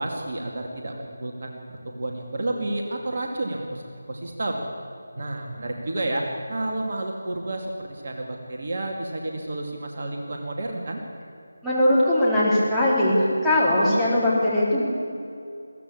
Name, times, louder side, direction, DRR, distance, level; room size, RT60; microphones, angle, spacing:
voice 1, 0.0-1.6 1.8-3.8 4.1-4.6 5.2-11.0, right 2 dB, 45° right, 1 dB, 2.4 m, -30 dB
voice 2, 11.6-13.2 13.4-14.8, left 1 dB, ahead, -11 dB, 4.0 m, -20 dB
21.5 x 16.5 x 8.6 m, 2.5 s
figure-of-eight pair, 160°, 0 cm